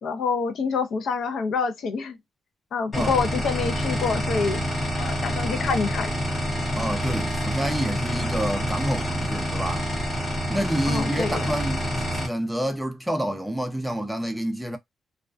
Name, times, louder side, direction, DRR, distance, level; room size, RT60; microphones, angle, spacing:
voice 1, 0.0-2.2 2.7-4.6 5.0-6.1 10.9-11.4, left 5 dB, 70° left, 0.6 m, -26 dB
sound 1, 2.9-12.3, equal, 30° left, 0.8 m, -27 dB
voice 2, 6.7-9.9 10.5-14.8, equal, ahead, 0.4 m, -28 dB
2.3 x 2.2 x 2.4 m
wide cardioid pair, 150°, 0 cm